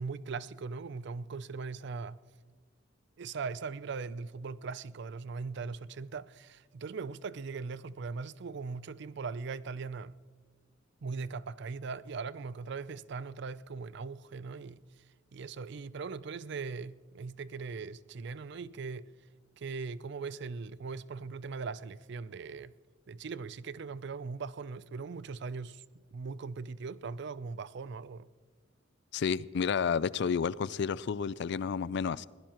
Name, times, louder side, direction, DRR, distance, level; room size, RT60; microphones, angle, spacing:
voice 1, 0.0-2.2 3.2-10.1 11.0-14.8 15.3-19.1 19.6-22.7 23.1-25.8 26.1-28.3, right 4 dB, 60° right, 0.4 m, -40 dB
voice 2, 29.1-32.3, left 6 dB, 60° left, 0.4 m, -31 dB
21.5 x 16.5 x 3.0 m
head